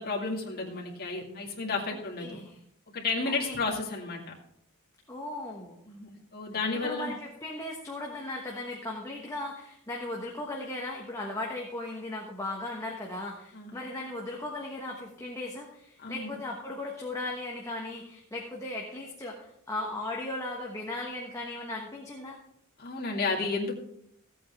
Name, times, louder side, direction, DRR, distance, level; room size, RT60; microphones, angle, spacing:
voice 1, 0.0-2.4 2.9-4.3 5.9-7.1 13.5-13.8 16.0-16.4 22.8-23.8, left 3 dB, 45° left, -2 dB, 2.2 m, -32 dB
voice 2, 1.9-2.6 3.3-3.5 5.1-5.8 6.8-22.4, left 2 dB, 15° left, -1 dB, 1.2 m, -37 dB
15.0 x 8.5 x 3.5 m, 0.73 s
head